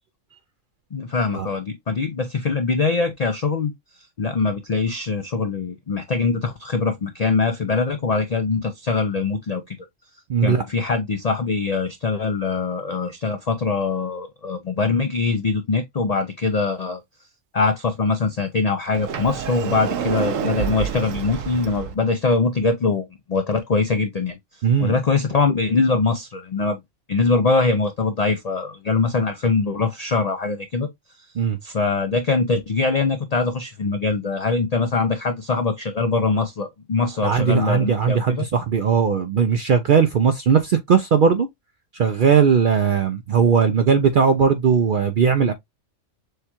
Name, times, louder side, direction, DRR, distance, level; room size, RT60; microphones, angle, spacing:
voice 1, 0.9-3.7 4.2-9.8 10.4-17.0 17.5-24.4 24.8-26.8 27.1-30.9 31.6-38.5, left 4 dB, 65° left, 0.4 m, -22 dB
voice 2, 10.3-10.6 24.6-24.9 31.4-31.6 37.2-41.5 41.9-45.5, right 6 dB, 65° right, 0.5 m, -18 dB
Sliding door, 18.9-21.9, right 8 dB, 85° right, 1.0 m, -28 dB
6.5 x 2.3 x 2.8 m
omnidirectional pair, 1.3 m